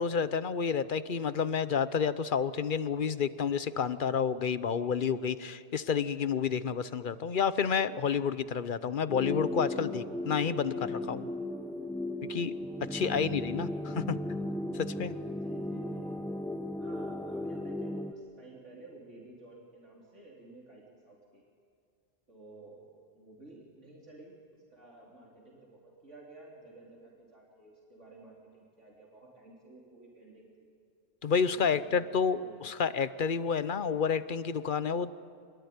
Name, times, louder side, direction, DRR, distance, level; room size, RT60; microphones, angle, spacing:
voice 1, 0.0-11.3 12.2-12.5 12.9-14.2 14.7-15.1 31.2-32.4 32.6-35.1, left 6 dB, 50° left, 14 dB, 0.9 m, -30 dB
sound 1, 9.1-18.1, left 1 dB, ahead, 1.1 m, -36 dB
voice 2, 12.9-13.3 13.7-14.0 15.2-16.2 16.8-21.4 22.3-22.9 23.1-30.7 31.3-32.9, right 2 dB, 90° right, -4 dB, 4.1 m, -53 dB
25.5 x 21.5 x 9.5 m, 2.4 s
omnidirectional pair, 1.2 m